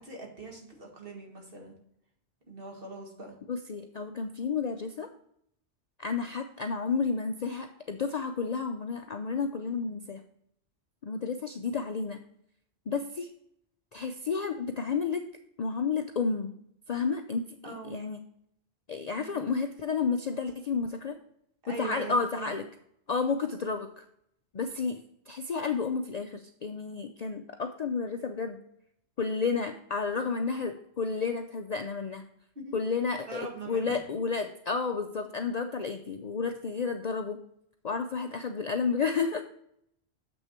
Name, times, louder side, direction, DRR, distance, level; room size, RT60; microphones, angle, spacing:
voice 1, 0.0-1.8 2.5-3.4 17.6-18.0 19.2-19.4 21.6-22.6 32.6-32.8 33.3-34.0, right 3 dB, 50° right, 0 dB, 2.0 m, -42 dB
voice 2, 3.5-5.1 6.0-10.2 11.0-12.2 12.9-13.3 13.9-15.2 15.6-16.5 16.9-17.4 17.9-18.2 18.9-21.2 21.8-22.6 23.1-23.9 24.5-28.6 29.2-32.2 32.7-37.4 37.8-39.4, left 5 dB, 50° left, 6 dB, 0.5 m, -31 dB
7.1 x 6.3 x 4.3 m, 0.73 s
omnidirectional pair, 1.2 m